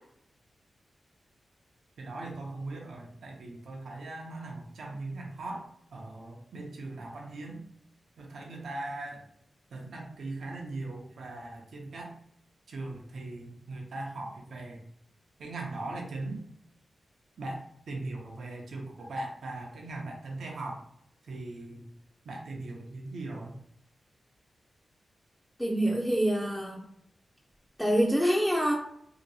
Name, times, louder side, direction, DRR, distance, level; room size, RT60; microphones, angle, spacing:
voice 1, 2.0-7.6 8.2-9.2 9.7-12.1 12.7-14.8 15.4-16.4 17.4-20.8 21.3-21.9 22.2-23.6, right 2 dB, 80° right, 0 dB, 0.6 m, -39 dB
voice 2, 25.6-26.8 27.8-28.7, equal, ahead, -3 dB, 0.5 m, -25 dB
2.9 x 2.6 x 2.7 m, 0.70 s
cardioid pair, 65°, 0 cm